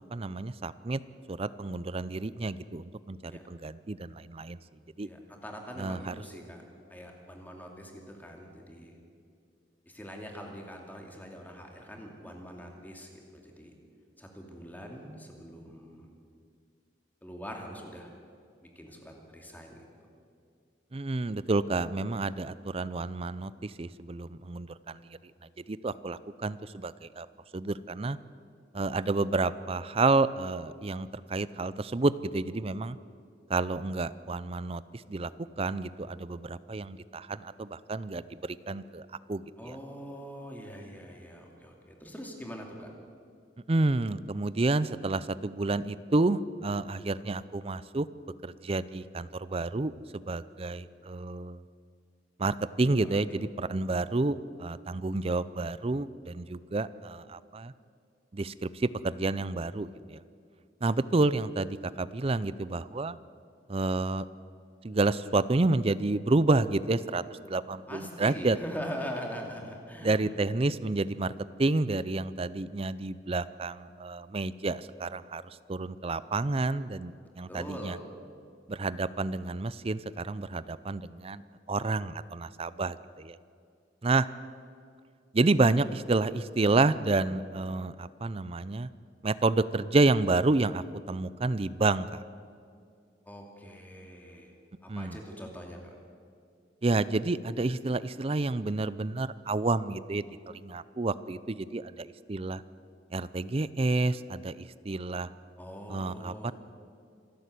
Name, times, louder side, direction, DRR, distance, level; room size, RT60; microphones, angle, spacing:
voice 1, 0.1-1.0 1.3-4.6 5.0-5.1 5.8-6.1 20.9-25.0 25.7-27.3 27.5-28.2 28.7-33.0 33.5-34.8 35.1-35.3 35.6-39.8 43.7-48.1 48.4-49.9 50.3-51.6 52.4-57.7 58.3-60.2 60.8-63.2 63.7-64.2 64.8-67.2 67.5-68.6 70.0-71.3 71.6-75.4 75.7-78.0 78.7-81.4 81.7-83.4 84.0-84.3 85.3-88.9 89.2-92.2 94.9-95.2 96.8-100.3 100.5-102.6 103.1-105.3 105.9-106.5, right 3 dB, 30° right, 16 dB, 0.5 m, -29 dB
voice 2, 5.0-6.6 6.9-9.0 9.9-13.7 14.2-16.1 17.2-18.1 18.6-19.8 39.6-42.9 53.0-53.2 67.9-70.3 77.5-78.1 93.2-94.6 94.8-95.8 105.6-106.5, equal, 10° left, 1 dB, 2.6 m, -43 dB
27.0 x 12.0 x 8.4 m, 2.3 s
head